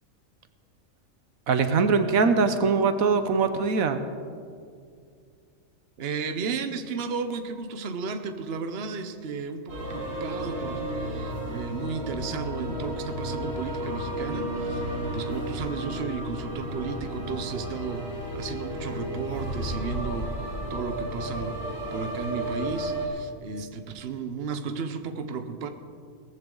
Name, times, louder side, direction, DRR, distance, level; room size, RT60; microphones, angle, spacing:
voice 1, 1.5-4.0, right 5 dB, 90° right, 9 dB, 1.3 m, -22 dB
voice 2, 6.0-21.6 21.9-25.7, right 5 dB, 50° right, 8 dB, 1.0 m, -34 dB
sound 1, 9.7-23.1, right 1 dB, 70° right, 3.7 m, -33 dB
18.0 x 14.5 x 3.9 m, 2.2 s
omnidirectional pair, 1.4 m